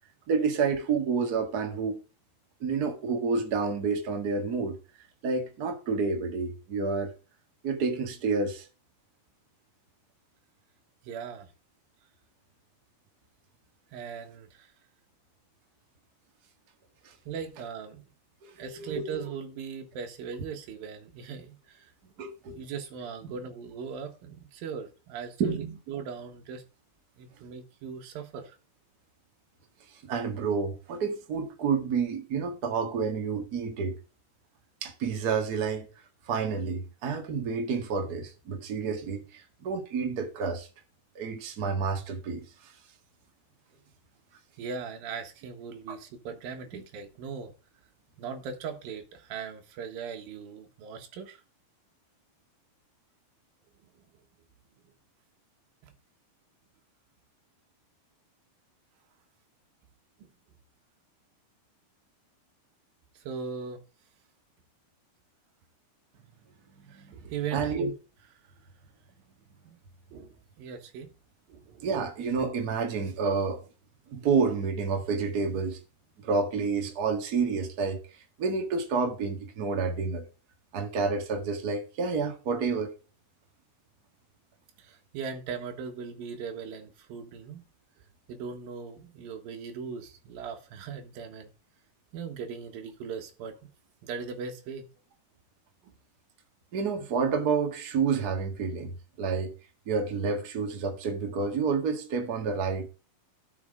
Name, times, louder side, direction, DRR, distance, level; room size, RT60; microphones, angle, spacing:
voice 1, 0.3-2.0 2.6-4.8 5.2-7.1 7.6-8.7 17.0-17.1 18.4-19.3 22.2-22.6 23.2-23.3 25.4-25.8 30.0-34.0 34.8-35.9 36.3-40.7 41.1-42.4 45.9-46.0 46.7-46.8 67.0-67.1 67.5-67.9 71.8-73.6 74.1-75.8 76.2-78.0 78.4-80.3 80.7-82.9 96.7-99.5 99.9-102.9, right 5 dB, 40° right, 1.3 m, -29 dB
voice 2, 11.0-11.5 13.9-14.7 17.3-18.1 18.6-21.9 22.5-26.6 27.2-28.6 44.6-47.5 48.2-51.4 55.8-55.9 60.2-60.3 63.2-63.8 66.9-67.9 69.7-69.8 70.1-71.1 71.5-71.9 84.8-87.6 88.3-91.5 92.1-93.6 94.0-94.9 95.8-95.9, right 6 dB, 70° right, 3.2 m, -39 dB
12.0 x 6.3 x 3.6 m
omnidirectional pair, 4.4 m